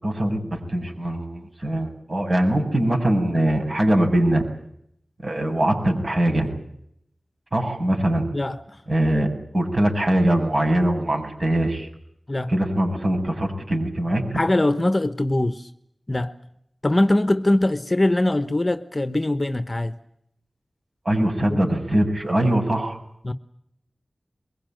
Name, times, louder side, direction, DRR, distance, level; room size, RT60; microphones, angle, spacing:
voice 1, 0.0-4.4 5.2-6.5 7.5-8.3 8.9-9.3 9.5-11.9 12.5-14.2 21.1-23.0, right 1 dB, 40° right, 7.6 m, -22 dB
voice 2, 8.3-8.8 12.3-12.5 14.3-15.7 16.1-16.3 16.8-19.9 21.4-21.7 23.2-23.3, left 1 dB, 30° left, 1.1 m, -22 dB
23.5 x 22.0 x 9.1 m
wide cardioid pair, 80°, 0 cm